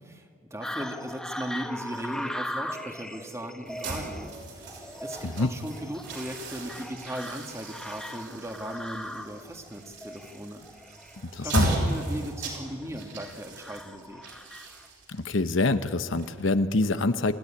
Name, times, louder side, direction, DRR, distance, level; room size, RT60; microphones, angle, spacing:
voice 1, 0.0-4.7 5.0-11.0 11.4-14.2, equal, 15° right, 4 dB, 2.0 m, -38 dB
sound 1, 0.6-14.9, equal, 5° left, 1.1 m, -40 dB
sound 2, 3.7-16.7, right 1 dB, 60° right, 5.9 m, -35 dB
voice 2, 11.3-11.7 15.1-17.3, left 2 dB, 65° left, 11 dB, 0.9 m, -25 dB
28.5 x 15.5 x 10.0 m, 2.2 s
head